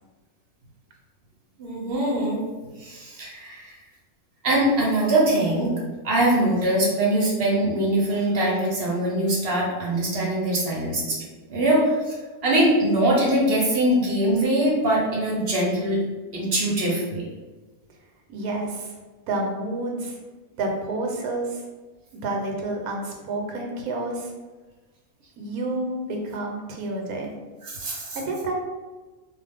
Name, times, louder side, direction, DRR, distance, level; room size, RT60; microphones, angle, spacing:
voice 1, 1.6-2.4 2.8-3.7 4.4-5.7 6.0-11.2 11.5-12.1 12.4-16.0 16.3-17.2 27.6-28.2, right 1 dB, 50° right, -4 dB, 0.8 m, -22 dB
voice 2, 18.3-18.9 19.3-20.2 20.6-21.6 22.2-24.3 25.4-27.3 28.2-28.5, right 2 dB, 80° right, 1 dB, 1.1 m, -29 dB
2.4 x 2.4 x 3.4 m, 1.3 s
omnidirectional pair, 1.6 m